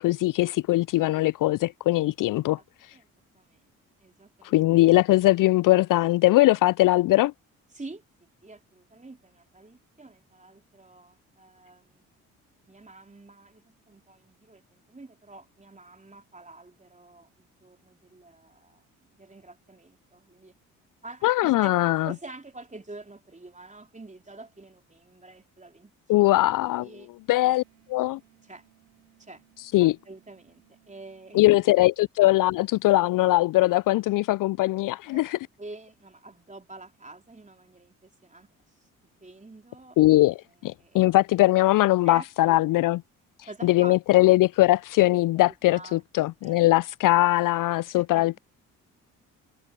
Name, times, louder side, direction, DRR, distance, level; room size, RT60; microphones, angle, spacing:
voice 1, 0.0-2.6 4.4-7.3 21.2-22.1 26.1-26.9 27.3-27.6 27.9-28.2 29.7-30.0 31.3-35.4 40.0-43.0 43.6-48.4, left 17 dB, 50° left, 0.5 m, -21 dB
voice 2, 4.0-4.6 7.7-8.0 8.4-12.1 12.7-20.5 21.0-21.7 22.0-25.9 26.6-27.1 27.4-27.6 28.4-28.7 29.2-29.4 29.8-31.5 35.1-35.3 35.6-38.5 38.8-38.9 39.2-40.0 40.8-41.1 42.0-42.8 43.4-44.0 45.4-46.0 46.4-46.7 47.9-48.2, right 2 dB, 15° right, 3.6 m, -47 dB
Wind instrument woodwind instrument, 27.3-31.5, right 18 dB, 85° right, 6.7 m, -63 dB
hypercardioid pair, 45°, 41 cm